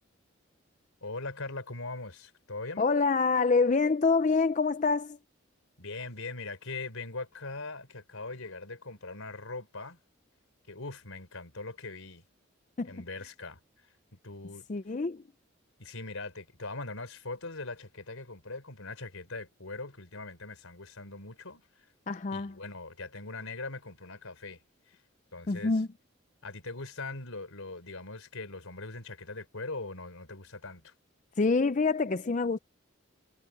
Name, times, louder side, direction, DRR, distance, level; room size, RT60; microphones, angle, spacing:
voice 1, 1.0-2.9 5.8-10.0 10.7-12.2 12.8-13.6 14.2-14.7 15.8-21.9 22.3-24.6 24.9-25.0 25.3-25.7 26.4-30.9, left 3 dB, 90° left, 4.5 m, -41 dB
voice 2, 2.8-5.2 12.8-13.0 14.7-15.2 22.1-22.5 25.5-25.9 31.4-32.6, left 4 dB, 35° left, 0.4 m, -26 dB
head